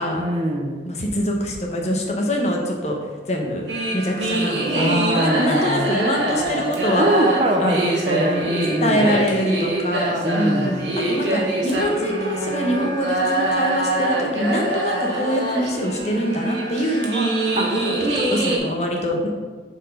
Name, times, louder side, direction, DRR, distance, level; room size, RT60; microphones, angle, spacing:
voice 1, 0.1-0.9 4.7-6.0 7.0-9.2 10.2-10.9 17.5-17.8, right 1 dB, 35° right, 3 dB, 0.7 m, -23 dB
voice 2, 0.8-3.0 3.3-3.6 3.9-7.1 7.6-8.5 8.8-10.8 11.1-19.3, equal, 40° left, 1 dB, 1.0 m, -24 dB
sound 1, 3.7-18.6, right 2 dB, 85° right, 1.4 m, -24 dB
6.1 x 4.7 x 5.0 m, 1.4 s
head